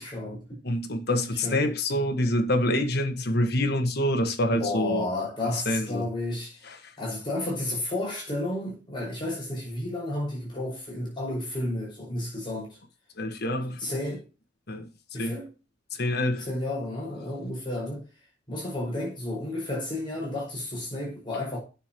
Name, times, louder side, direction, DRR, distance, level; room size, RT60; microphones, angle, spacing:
voice 1, 0.0-0.6 1.3-1.7 4.5-12.8 13.8-14.2 15.1-15.5 16.4-18.0 18.5-21.6, left 1 dB, 25° left, 5.1 m, -32 dB
voice 2, 0.6-5.1 5.5-6.1 6.7-6.9 13.2-13.9 14.7-14.9 15.2-15.4 15.9-16.5, left 1 dB, 60° left, 1.4 m, -26 dB
9.5 x 6.9 x 2.9 m
head